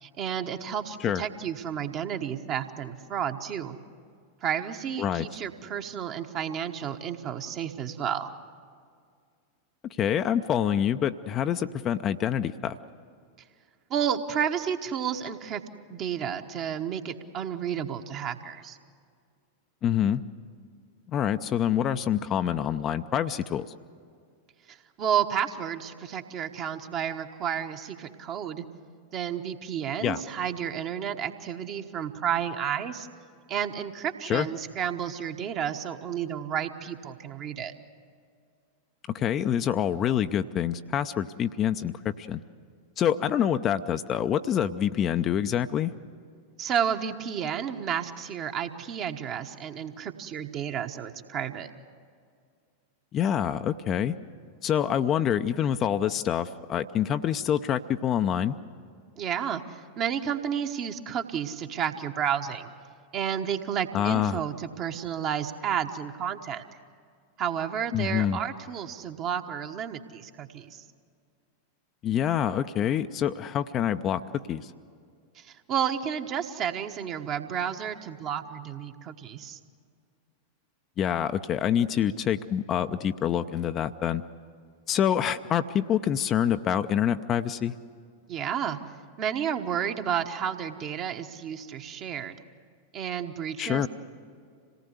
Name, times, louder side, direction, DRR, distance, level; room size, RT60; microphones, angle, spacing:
voice 1, 0.0-3.8 4.4-8.3 13.9-15.6 15.9-18.8 24.7-28.6 29.1-33.1 33.5-37.7 46.6-51.7 59.2-62.7 63.1-66.6 67.4-70.8 75.3-79.6 88.3-88.8 89.2-92.4 92.9-93.9, right 8 dB, 35° right, 5 dB, 1.2 m, -31 dB
voice 2, 10.0-12.8 19.8-20.2 21.1-23.7 30.0-30.2 34.3-34.5 39.1-42.4 43.0-45.9 53.1-54.2 54.6-58.6 63.9-64.4 67.9-68.4 72.0-74.2 74.5-74.7 81.0-84.2 84.9-87.7 93.6-93.9, left 9 dB, 30° left, 10 dB, 0.6 m, -26 dB
26.5 x 18.5 x 8.2 m, 2.2 s
figure-of-eight pair, 90°, 0 cm